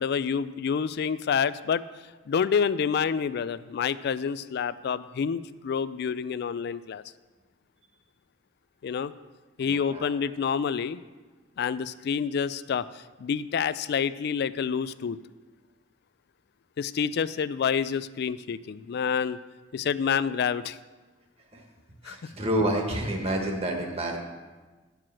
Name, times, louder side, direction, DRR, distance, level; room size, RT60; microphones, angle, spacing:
voice 1, 0.0-1.8 2.3-7.0 8.8-9.1 9.6-11.0 11.6-15.2 16.8-19.4 19.7-20.8 22.0-22.3, left 6 dB, 55° left, 16 dB, 0.3 m, -28 dB
voice 2, 9.6-10.1 21.5-21.6 22.0-24.2, right 1 dB, 35° right, 1 dB, 1.5 m, -29 dB
10.5 x 4.7 x 7.4 m, 1.3 s
head